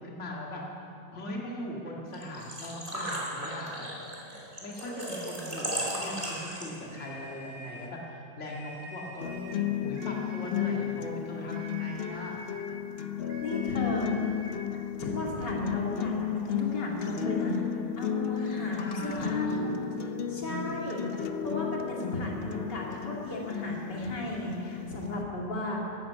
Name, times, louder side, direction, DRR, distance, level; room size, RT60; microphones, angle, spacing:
voice 1, 0.0-3.9 4.6-12.4 18.4-19.5, left 1 dB, 45° left, -3 dB, 2.4 m, -39 dB
Engine / Trickle dribble / Fill (with liquid), 2.1-7.0, right 1 dB, 20° right, 3.0 m, -36 dB
sound 1, 6.9-8.0 8.4-9.7 9.9-10.9 11.5-12.7 13.3-14.6, right 1 dB, 70° right, 2.4 m, -46 dB
sound 2, 9.2-25.2, left 9 dB, 60° left, 0.6 m, -34 dB
voice 2, 13.4-14.1 15.0-17.6 18.0-19.7 20.3-21.0 21.4-25.8, left 1 dB, 85° left, -3 dB, 3.2 m, -34 dB
14.0 x 12.0 x 8.4 m, 2.7 s
omnidirectional pair, 1.8 m